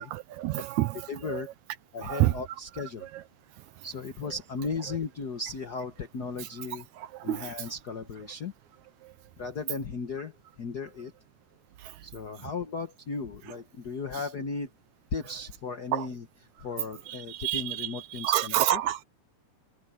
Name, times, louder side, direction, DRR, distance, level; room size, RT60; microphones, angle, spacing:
voice 1, 0.1-1.4 2.0-2.3 7.3-7.5 15.9-16.1 17.1-17.9 18.2-19.0, right 14 dB, 75° right, 1.9 m, -28 dB
voice 2, 1.1-1.5 1.9-3.1 3.8-6.9 7.2-8.5 9.4-11.1 12.0-14.7 15.1-16.3 16.6-18.8, left 4 dB, 70° left, 0.9 m, -36 dB
omnidirectional pair, 3.7 m